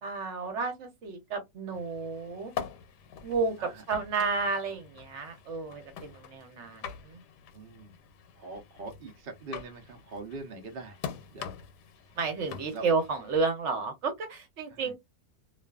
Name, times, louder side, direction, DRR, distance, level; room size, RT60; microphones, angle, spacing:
voice 1, 0.0-2.5 3.2-7.2 12.2-14.9, right 4 dB, 55° right, 0.9 m, -31 dB
sound 1, 1.7-13.4, left 7 dB, 90° left, 1.2 m, -44 dB
voice 2, 7.5-7.9 8.4-11.0 11.3-11.5 12.7-12.9 14.7-14.9, right 3 dB, 80° right, 0.5 m, -42 dB
2.4 x 2.4 x 2.3 m
omnidirectional pair, 1.8 m